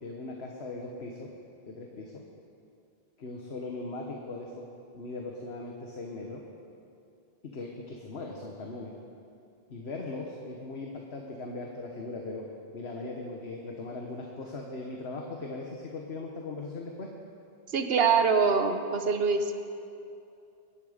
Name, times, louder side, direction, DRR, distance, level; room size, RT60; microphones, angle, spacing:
voice 1, 0.0-1.3 1.7-2.2 3.2-4.5 4.9-6.4 7.4-8.9 9.7-12.5 12.7-17.1, left 3 dB, 85° left, 0 dB, 1.5 m, -39 dB
voice 2, 17.7-19.5, right 5 dB, 75° right, 7 dB, 1.2 m, -24 dB
22.5 x 11.0 x 5.1 m, 2.6 s
omnidirectional pair, 1.0 m